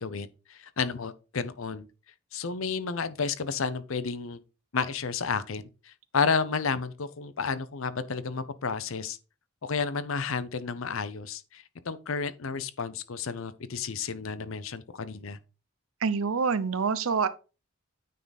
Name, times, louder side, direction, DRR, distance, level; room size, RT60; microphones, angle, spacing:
voice 1, 0.0-1.9 2.3-4.4 4.7-9.2 9.6-15.4, left 5 dB, 70° left, 0.7 m, -31 dB
voice 2, 16.0-17.3, right 5 dB, 75° right, 0.6 m, -26 dB
9.2 x 3.9 x 4.0 m
head